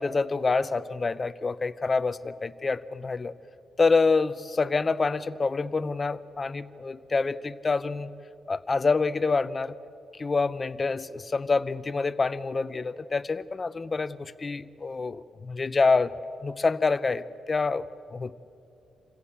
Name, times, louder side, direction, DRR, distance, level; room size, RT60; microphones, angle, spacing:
voice 1, 0.0-3.3 3.8-8.1 8.5-9.7 10.2-16.1 16.4-17.8 18.1-18.3, left 4 dB, 30° left, 15 dB, 0.6 m, -27 dB
27.0 x 15.5 x 8.6 m, 2.8 s
cardioid pair, 125°, 0 cm